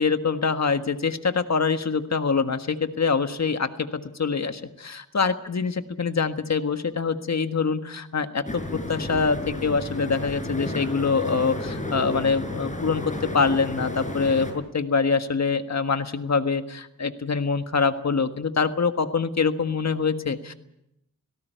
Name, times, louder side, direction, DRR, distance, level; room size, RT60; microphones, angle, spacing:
voice 1, 0.0-20.5, left 5 dB, 55° left, 9 dB, 1.5 m, -25 dB
sound 1, 8.4-14.5, left 1 dB, 20° left, 5.9 m, -32 dB
18.5 x 17.5 x 9.2 m, 0.82 s
wide cardioid pair, 80°, 33 cm